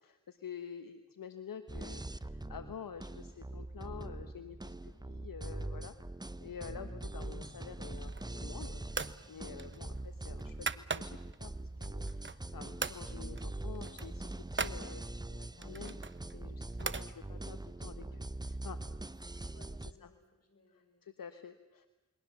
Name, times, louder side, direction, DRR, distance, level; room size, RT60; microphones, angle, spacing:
voice 1, 0.3-4.7 5.1-5.9 6.4-8.8 9.3-15.0 15.3-16.0 16.3-18.8 20.0-20.1 21.0-21.9, left 7 dB, 70° left, 10 dB, 1.3 m, -48 dB
sound 1, 1.7-19.9, right 2 dB, 10° right, 0.8 m, -43 dB
sound 2, 8.0-8.5 8.9-9.2 9.6-11.4 11.8-12.5 12.8-13.0 13.4-13.5 13.8-14.8 15.6-17.1, right 4 dB, 35° right, 1.0 m, -39 dB
voice 2, 18.0-18.4 19.3-21.1, left 2 dB, 45° left, 5 dB, 6.2 m, -66 dB
28.5 x 22.5 x 7.1 m, 1.0 s
cardioid pair, 45°, 35 cm